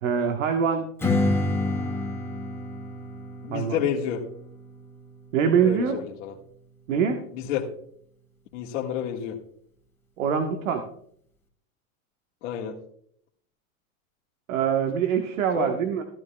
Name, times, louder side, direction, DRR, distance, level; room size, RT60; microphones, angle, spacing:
voice 1, 0.0-0.9 3.5-3.8 5.3-6.0 6.9-7.2 10.2-10.8 14.5-16.0, right 7 dB, 70° right, 5 dB, 1.4 m, -24 dB
Strum, 1.0-6.2, left 2 dB, 5° left, 2.6 m, -30 dB
voice 2, 3.4-4.3 5.6-6.4 7.3-7.7 8.5-9.4 12.4-12.8 15.6-15.8, left 9 dB, 60° left, -3 dB, 1.8 m, -29 dB
15.0 x 12.0 x 2.3 m, 0.66 s
hypercardioid pair, 110°, 41 cm